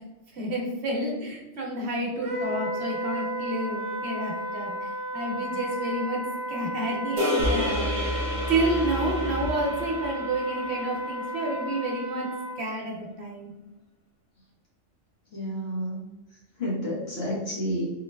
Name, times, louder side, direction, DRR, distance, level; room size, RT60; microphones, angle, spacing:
voice 1, 0.3-6.2 6.5-8.2 8.5-12.3 12.6-13.5, right 1 dB, 60° right, -1 dB, 1.0 m, -30 dB
Wind instrument woodwind instrument, 2.2-12.6, right 1 dB, 85° right, 1.1 m, -34 dB
sound 1, 7.2-11.6, left 2 dB, 25° right, 1.0 m, -32 dB
sound 2, 7.4-10.3, equal, 70° left, 1.1 m, -32 dB
voice 2, 15.3-16.0 16.6-17.9, equal, 55° left, -6 dB, 1.5 m, -30 dB
3.9 x 3.1 x 2.2 m, 0.97 s
omnidirectional pair, 1.3 m